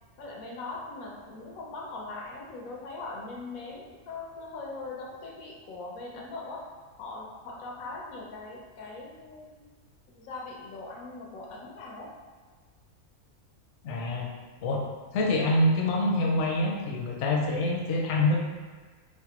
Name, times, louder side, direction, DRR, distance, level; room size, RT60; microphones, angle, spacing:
voice 1, 0.2-6.7 7.0-9.6 10.1-12.1, left 3 dB, 90° left, -2 dB, 1.1 m, -40 dB
voice 2, 13.8-14.3 14.6-14.8 15.1-18.4, left 1 dB, 65° left, -1 dB, 0.8 m, -26 dB
3.2 x 2.0 x 2.9 m, 1.5 s
omnidirectional pair, 1.5 m